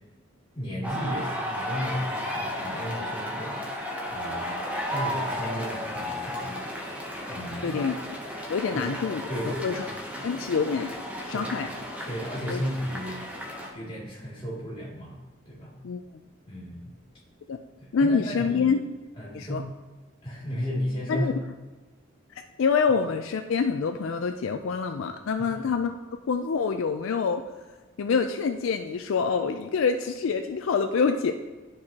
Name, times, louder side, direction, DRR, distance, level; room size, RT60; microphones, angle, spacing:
voice 1, 0.5-3.6 4.1-4.6 4.9-6.6 7.3-7.8 8.7-8.9 9.3-9.9 10.1-10.3 11.3-11.7 12.0-13.2 13.7-15.2 15.5-15.7 16.5-16.9 17.8-18.8 19.2-19.6 20.2-21.3 22.9-23.0 25.4-25.6, equal, 20° left, -6 dB, 2.3 m, -34 dB
sound 1, 0.8-13.7, equal, 5° right, 0.7 m, -34 dB
voice 2, 7.6-8.0 8.5-9.9 10.2-10.9 11.3-11.7 12.5-12.6 15.8-16.0 17.5-17.6 17.9-18.8 19.3-19.6 21.1-21.3 22.6-25.9 26.3-27.4 28.0-31.3, left 5 dB, 70° left, 6 dB, 0.4 m, -26 dB
11.5 x 4.7 x 2.8 m, 1.3 s
head